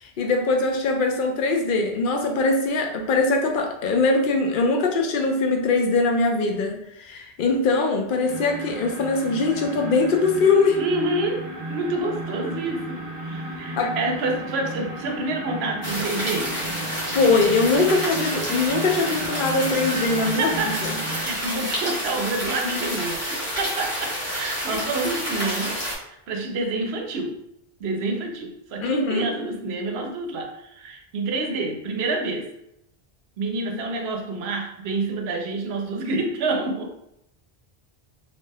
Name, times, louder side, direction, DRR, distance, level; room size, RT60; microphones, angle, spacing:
voice 1, 0.0-10.8 13.8-13.9 17.1-20.6 24.7-24.8 28.8-29.3, left 3 dB, 60° left, 3 dB, 0.7 m, -22 dB
sound 1, 8.2-21.2, right 2 dB, 45° right, 0.6 m, -34 dB
voice 2, 10.8-16.5 20.2-25.8 26.1-27.4 27.8-32.5 33.4-36.9, right 2 dB, 80° right, 3 dB, 0.8 m, -28 dB
sound 2, 15.8-25.9, equal, 15° left, 0.8 m, -29 dB
2.7 x 2.1 x 3.3 m, 0.79 s
omnidirectional pair, 1.0 m